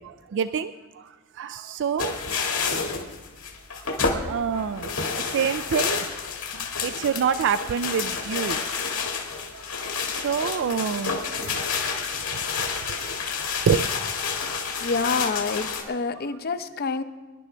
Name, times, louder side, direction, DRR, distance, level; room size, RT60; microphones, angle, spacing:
voice 1, 0.0-2.1 3.8-6.1 6.5-8.6 9.5-9.7 10.1-11.6 12.3-13.2 13.7-13.9, right 7 dB, 60° right, 12 dB, 0.4 m, -28 dB
sound 1, 2.0-15.8, left 5 dB, 85° left, 2.0 m, -29 dB
voice 2, 14.8-17.0, left 4 dB, 45° left, 10 dB, 0.7 m, -27 dB
24.5 x 10.5 x 3.4 m, 1.2 s
head